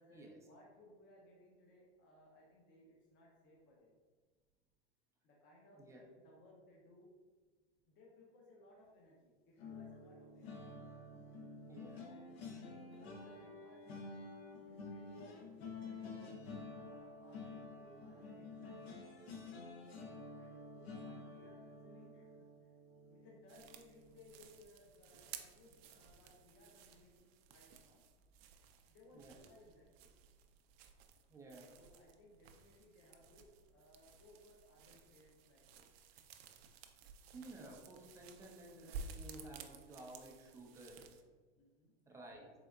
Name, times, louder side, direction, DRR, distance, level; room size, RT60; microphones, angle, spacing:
voice 1, 0.0-3.9 5.2-7.1 7.9-10.8 12.0-14.2 14.6-16.3 16.7-19.2 20.3-22.7 23.0-28.0 28.9-30.1 31.7-35.8 41.5-41.9, left 1 dB, 35° left, -3 dB, 0.8 m, -64 dB
sound 1, 9.6-24.7 25.1-25.4 25.7-25.9, left 3 dB, 70° left, 0.8 m, -51 dB
voice 2, 11.7-12.0 29.1-29.3 31.3-31.7 37.3-41.0 42.1-42.5, right 2 dB, 10° right, -1 dB, 0.4 m, -54 dB
sound 2, 23.5-41.2, right 5 dB, 70° right, 0.5 m, -55 dB
3.9 x 3.4 x 2.3 m, 1.4 s
supercardioid pair, 125°, 32 cm